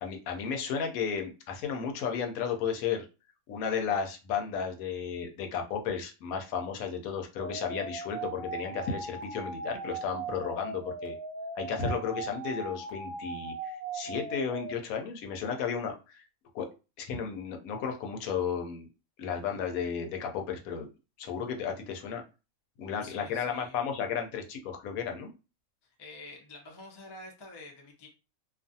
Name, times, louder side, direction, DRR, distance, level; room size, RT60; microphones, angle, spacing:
voice 1, 0.0-3.1 3.5-11.1 11.6-16.2 16.5-16.7 17.0-18.9 19.2-20.9 21.2-22.2 22.8-25.3, left 6 dB, 80° left, 4 dB, 1.0 m, -33 dB
sound 1, 7.4-14.7, right 3 dB, 30° right, 0.4 m, -39 dB
voice 2, 23.0-23.9 25.8-28.1, left 2 dB, 35° left, 0 dB, 0.4 m, -48 dB
2.4 x 2.4 x 2.6 m, 0.30 s
omnidirectional pair, 1.5 m